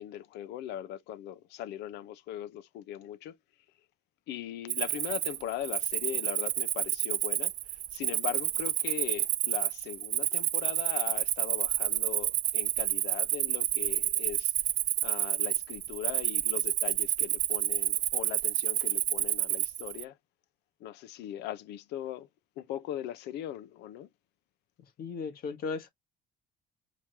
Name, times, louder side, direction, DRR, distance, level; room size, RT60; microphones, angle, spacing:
voice 1, 0.0-3.4 4.3-7.5 7.9-14.5 15.0-20.2 20.8-22.3 22.6-24.1, left 11 dB, 85° left, 0.7 m, -39 dB
Cricket, 4.7-20.0, right 13 dB, 55° right, 0.4 m, -30 dB
voice 2, 25.0-25.9, left 5 dB, 60° left, 1.6 m, -36 dB
5.0 x 3.0 x 3.4 m
cardioid pair, 110°, 17 cm